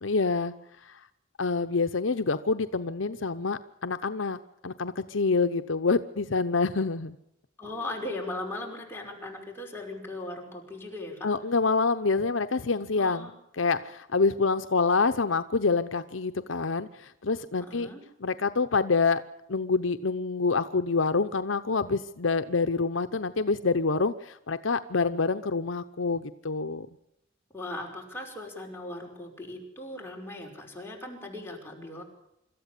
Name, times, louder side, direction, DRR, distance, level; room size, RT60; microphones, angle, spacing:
voice 1, 0.0-0.5 0.8-1.0 1.4-7.2 11.2-17.9 18.2-19.2 19.5-26.9, left 4 dB, 75° left, 10 dB, 0.9 m, -27 dB
voice 2, 7.6-11.3 13.0-13.3 17.5-18.0 27.5-32.0, left 2 dB, 10° left, -1 dB, 5.5 m, -38 dB
26.0 x 14.0 x 8.4 m, 0.80 s
head